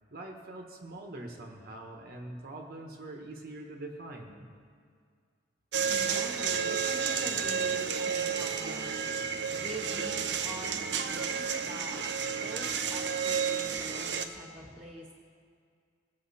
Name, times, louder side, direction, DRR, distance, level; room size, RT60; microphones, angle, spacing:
voice 1, 0.1-4.5, right 2 dB, 55° right, 1 dB, 1.2 m, -43 dB
sound 1, 5.7-14.3, right 6 dB, 75° right, 0.7 m, -31 dB
voice 2, 5.9-8.9 9.6-12.0 12.3-15.1, right 1 dB, 25° right, -5 dB, 1.5 m, -44 dB
18.5 x 7.4 x 4.2 m, 2.2 s
head